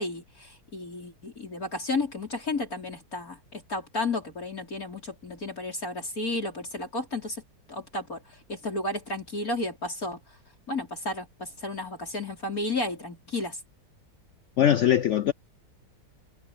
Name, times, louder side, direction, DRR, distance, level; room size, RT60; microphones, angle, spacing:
voice 1, 0.0-7.4 7.7-10.2 10.7-13.6, left 2 dB, 50° left, 5.6 m, -32 dB
voice 2, 14.6-15.3, left 10 dB, 75° left, 0.6 m, -21 dB
omnidirectional pair, 2.0 m